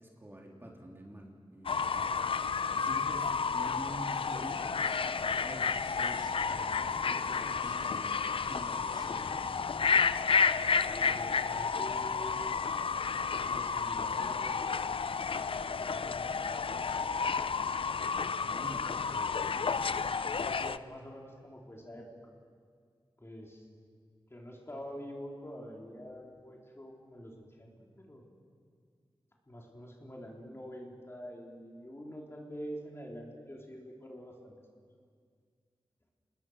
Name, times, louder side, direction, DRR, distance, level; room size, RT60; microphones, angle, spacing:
voice 1, 0.0-4.6 4.9-9.5 18.4-19.7, right 1 dB, 25° right, 0 dB, 3.1 m, -47 dB
Fowl / Bird, 1.7-20.8, left 5 dB, 70° left, 0.5 m, -31 dB
sound 1, 4.1-9.6, left 1 dB, 50° left, 5.5 m, -52 dB
voice 2, 10.7-12.5 13.4-17.2 19.5-22.3 23.2-23.7 24.3-28.2 29.5-34.5, equal, 25° left, -1 dB, 3.9 m, -47 dB
28.0 x 20.0 x 6.4 m, 2.1 s
wide cardioid pair, 75°, 9 cm